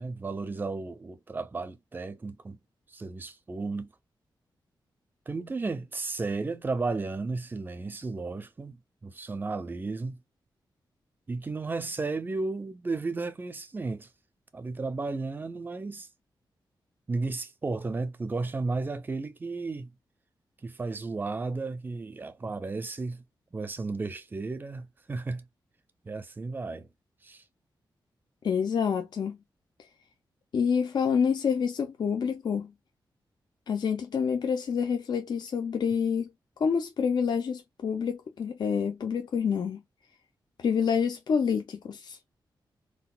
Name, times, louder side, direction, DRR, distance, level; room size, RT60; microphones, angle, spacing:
voice 1, 0.0-2.6 2.9-3.9 5.3-10.2 11.3-14.1 14.5-16.1 17.1-19.9 20.6-23.2 23.5-25.4 26.0-26.9 27.2-27.4, right 3 dB, 25° right, 0.5 m, -34 dB
voice 2, 28.4-29.4 30.5-32.7 33.7-36.3 36.6-39.8 40.6-42.2, left 6 dB, 60° left, 0.5 m, -27 dB
3.8 x 2.3 x 2.2 m
wide cardioid pair, 150°, 8 cm